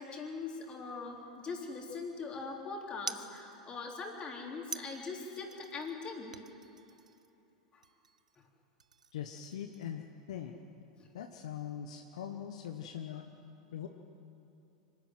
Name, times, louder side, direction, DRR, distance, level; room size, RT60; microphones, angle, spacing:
voice 1, 0.0-6.3 7.7-7.8, left 4 dB, 25° left, 0 dB, 3.8 m, -41 dB
sound 1, 1.2-2.0 3.1-3.8 4.7-6.0 6.3-7.5 7.8-8.5 8.8-10.0, right 6 dB, 80° right, 0.7 m, -48 dB
voice 2, 9.1-10.5 11.1-13.3 13.7-13.9, left 9 dB, 65° left, 4 dB, 1.2 m, -42 dB
25.0 x 12.5 x 9.3 m, 3.0 s
figure-of-eight pair, 90°, 4 cm